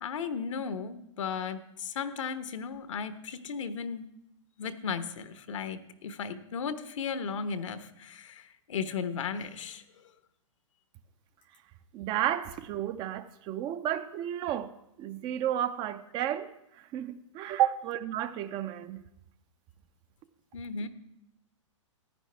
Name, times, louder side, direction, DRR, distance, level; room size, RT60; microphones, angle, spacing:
voice 1, 0.0-4.1 4.6-9.8 20.5-20.9, left 6 dB, 75° left, 1.1 m, -35 dB
voice 2, 11.9-14.7 15.0-16.5 16.8-19.0, right 11 dB, 30° right, 0.5 m, -32 dB
14.5 x 10.0 x 3.4 m
hypercardioid pair, 130°, 16 cm